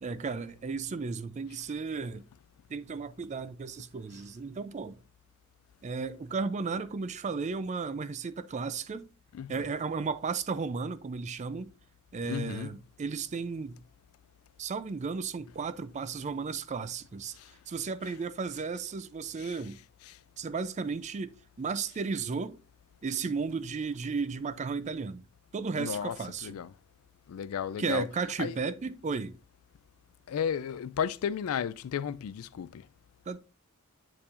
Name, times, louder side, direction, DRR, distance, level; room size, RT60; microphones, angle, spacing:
voice 1, 0.0-2.2 2.7-5.0 5.8-9.1 9.5-11.7 12.1-13.8 14.6-17.4 17.7-19.8 20.4-21.3 21.6-22.6 23.0-25.2 25.5-26.6 27.8-29.4 33.3-33.4, right 5 dB, 30° right, 0.4 m, -34 dB
voice 2, 12.3-12.7 17.4-17.5 19.4-19.5 25.8-26.2 26.4-26.7 27.3-28.0 28.4-28.5 30.3-32.9, left 8 dB, 65° left, 0.3 m, -33 dB
8.5 x 4.6 x 2.4 m
head